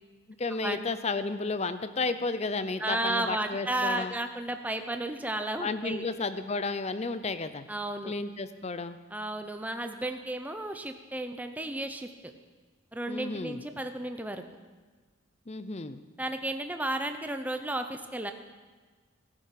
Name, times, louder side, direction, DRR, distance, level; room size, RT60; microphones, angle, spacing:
voice 1, 0.4-4.1 5.6-7.7 8.1-9.0 13.1-13.6 15.5-16.0, left 3 dB, 30° left, 12 dB, 0.6 m, -32 dB
voice 2, 2.8-6.1 7.7-8.1 9.1-12.3 12.9-14.4 16.2-18.3, right 1 dB, 5° right, 7 dB, 0.7 m, -33 dB
18.0 x 10.0 x 5.9 m, 1.4 s
head